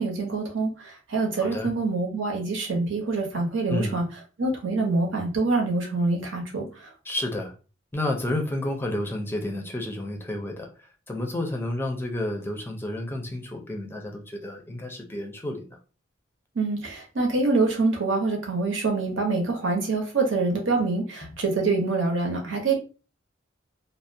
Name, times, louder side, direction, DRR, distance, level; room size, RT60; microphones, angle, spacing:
voice 1, 0.0-4.0 4.4-6.7 16.6-22.8, right 3 dB, 75° right, 1 dB, 0.8 m, -25 dB
voice 2, 1.4-1.7 3.7-4.0 7.0-7.5 7.9-10.7 11.1-15.8, left 1 dB, 10° left, 2 dB, 0.4 m, -30 dB
2.3 x 2.0 x 2.6 m, 0.34 s
head